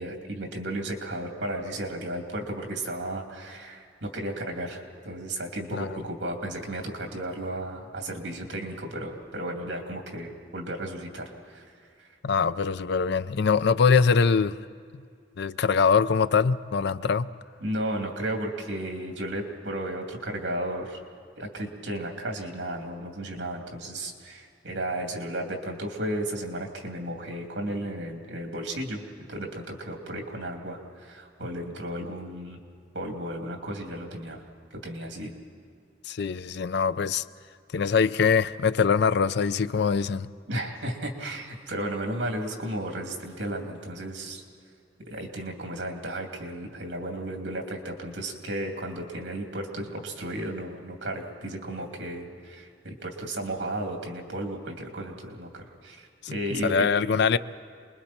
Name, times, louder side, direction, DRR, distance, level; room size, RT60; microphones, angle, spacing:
voice 1, 0.0-11.7 12.0-12.1 17.6-21.0 21.4-29.0 29.3-32.6 32.9-34.4 34.7-35.3 40.5-44.4 45.1-56.9, right 1 dB, 70° right, 2.9 m, -34 dB
voice 2, 12.2-14.6 14.9-15.0 15.4-17.3 36.0-37.2 37.7-40.3 56.2-56.3 56.6-57.4, left 5 dB, 65° left, 0.5 m, -23 dB
27.5 x 21.5 x 4.4 m
head